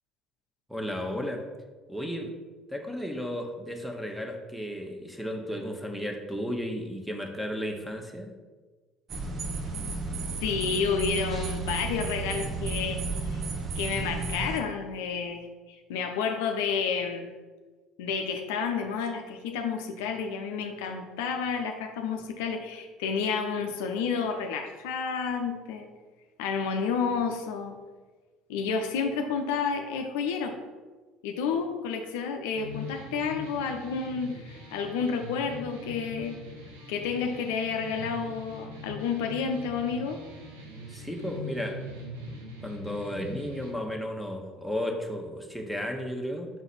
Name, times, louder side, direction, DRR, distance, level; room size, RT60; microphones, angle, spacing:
voice 1, 0.7-1.4 1.9-2.3 2.7-8.3 40.9-41.8 42.6-46.5, equal, ahead, 2 dB, 1.1 m, -34 dB
sound 1, 9.1-14.6, right 3 dB, 45° right, 0.9 m, -33 dB
voice 2, 10.4-13.0 13.3-13.4 13.7-17.3 18.0-25.9 26.4-27.8 28.5-30.6 31.2-36.4 36.9-40.2, left 5 dB, 70° left, 5 dB, 0.5 m, -30 dB
sound 2, 32.5-43.7, left 1 dB, 85° right, 0.9 m, -42 dB
6.1 x 4.0 x 4.2 m, 1.3 s
hypercardioid pair, 65°, 0 cm